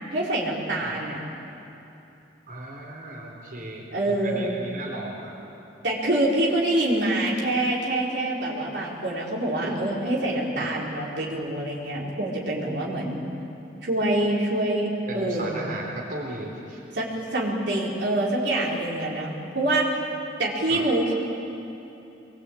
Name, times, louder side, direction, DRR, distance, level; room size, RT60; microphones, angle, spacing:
voice 1, 0.1-1.2 3.9-4.5 5.8-13.2 13.8-15.6 16.9-19.9 20.4-21.1, right 1 dB, 65° right, -4 dB, 4.3 m, -25 dB
voice 2, 2.5-5.3 9.6-9.8 10.6-10.7 15.1-16.8 20.7-20.8, right 2 dB, 50° right, -2 dB, 4.1 m, -36 dB
25.0 x 22.0 x 8.6 m, 2.9 s
head